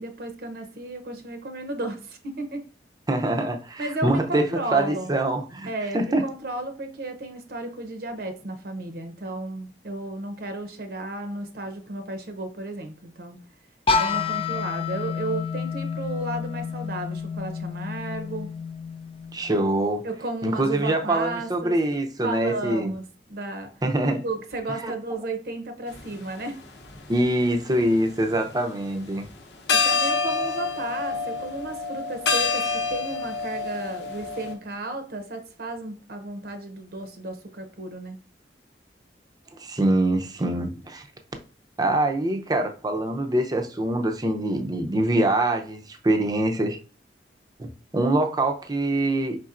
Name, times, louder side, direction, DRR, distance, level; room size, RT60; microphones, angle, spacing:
voice 1, 0.0-2.7 3.8-5.2 5.6-13.4 13.9-18.6 20.0-21.8 22.2-23.7 24.2-26.6 29.7-38.2, right 2 dB, 60° right, 0.7 m, -33 dB
voice 2, 3.1-4.5 4.7-6.2 19.3-20.0 20.4-22.9 23.8-24.2 24.8-24.9 27.1-29.3 39.6-41.1 41.8-46.8 47.6-49.4, right 1 dB, 20° right, 0.6 m, -24 dB
sound 1, 13.9-19.7, left 5 dB, 30° left, 0.4 m, -29 dB
sound 2, 25.9-26.1 26.8-27.8 29.3-29.4 29.7-34.5, left 4 dB, 80° left, 0.9 m, -27 dB
5.0 x 4.1 x 2.5 m
head